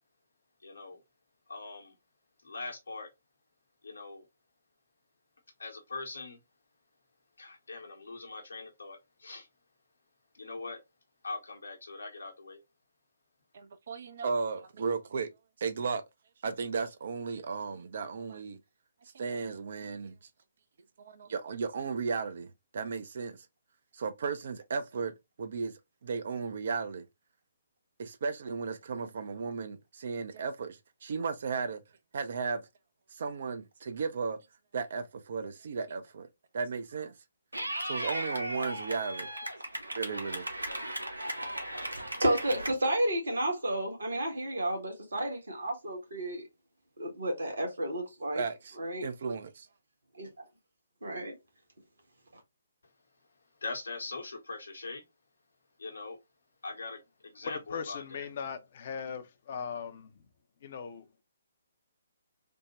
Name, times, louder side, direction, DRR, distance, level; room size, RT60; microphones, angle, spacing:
voice 1, 0.6-1.0 1.5-1.9 2.4-3.1 3.8-4.3 5.6-6.4 7.4-9.5 10.3-10.8 11.2-12.6 53.6-55.0 55.8-56.2 56.6-58.3, left 3 dB, 70° left, 0.9 m, -41 dB
voice 2, 13.5-15.3 15.6-16.0 16.4-18.6 19.1-20.2 21.0-23.5 23.9-25.7 26.0-27.0 28.0-31.8 32.1-32.6 33.1-34.4 34.7-36.3 36.5-37.1 37.8-39.3 39.8-40.4 48.3-48.8 49.0-49.7, right 5 dB, 50° right, 0.4 m, -35 dB
Clapping / Cheering, 37.5-42.7, right 1 dB, 85° right, 0.8 m, -37 dB
voice 3, 42.2-46.4 47.0-48.4 48.8-49.1 50.1-50.3 51.0-51.3, right 1 dB, 65° right, 1.4 m, -31 dB
voice 4, 57.4-60.2 60.6-61.1, left 6 dB, 45° left, 0.5 m, -39 dB
3.4 x 2.1 x 2.9 m
figure-of-eight pair, 135°, 0 cm